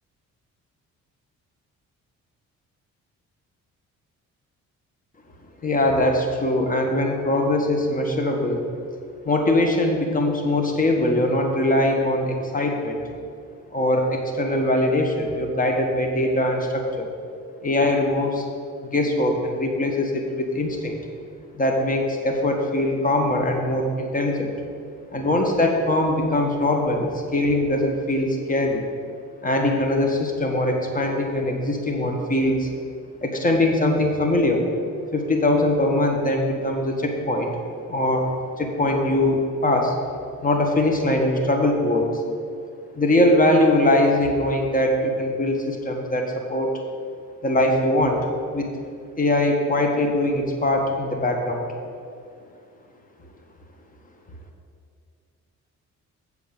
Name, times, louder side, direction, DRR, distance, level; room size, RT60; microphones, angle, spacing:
voice 1, 5.6-8.6 9.2-13.0 13.7-17.1 17.6-18.4 18.8-21.0 21.5-24.5 25.1-28.8 29.4-32.7 33.2-34.7 35.1-37.5 37.9-38.3 38.6-39.9 40.4-42.1 42.9-46.7 47.4-48.2 48.5-48.7 49.2-51.6, left 1 dB, 30° left, 2 dB, 1.6 m, -22 dB
7.9 x 7.0 x 6.8 m, 2.3 s
cardioid pair, 90°, 30 cm